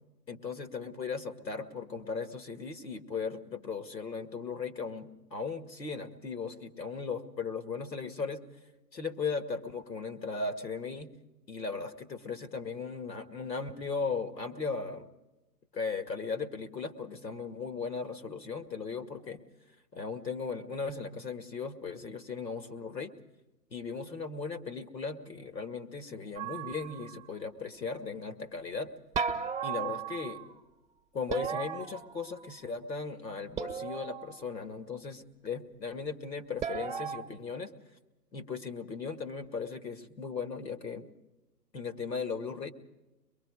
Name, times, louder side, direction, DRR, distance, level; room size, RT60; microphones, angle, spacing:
voice 1, 0.3-8.4 8.9-11.1 11.5-15.1 15.7-19.4 19.9-23.1 23.7-28.9 29.6-30.4 31.1-37.7 38.3-41.1 41.7-42.7, left 5 dB, 80° left, 8 dB, 2.1 m, -37 dB
sound 1, 26.4-27.3 29.1-30.5 31.3-32.6 33.6-34.4 36.6-37.2, right 6 dB, 10° right, 1.1 m, -36 dB
24.0 x 22.5 x 4.9 m, 1.0 s
figure-of-eight pair, 130°, 50 cm